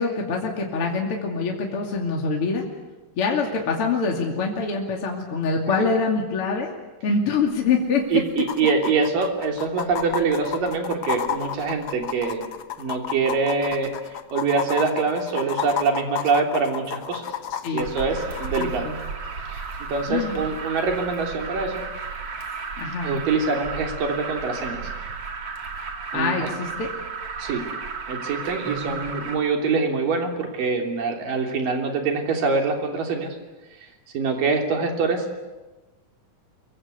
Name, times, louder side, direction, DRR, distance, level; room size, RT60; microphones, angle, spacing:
voice 1, 0.0-2.6 3.2-6.7 7.0-8.0 17.6-17.9 18.6-19.0 20.1-20.4 22.8-23.1 26.1-26.9 28.6-29.3, left 4 dB, 45° left, 0 dB, 3.3 m, -25 dB
sound 1, 7.3-7.4 7.7-7.8 8.4-18.7 20.3-20.4, left 9 dB, 60° left, 1.3 m, -31 dB
voice 2, 8.1-12.4 12.8-13.9 14.3-17.3 17.7-18.9 19.5-21.8 23.0-24.9 26.1-26.5 27.4-27.7 28.1-33.4 33.8-33.9 34.1-35.4, right 4 dB, 80° right, 3 dB, 4.9 m, -24 dB
Alarm, 17.8-29.3, right 5 dB, 50° right, 3.5 m, -34 dB
25.5 x 23.5 x 8.3 m, 1.2 s
omnidirectional pair, 3.8 m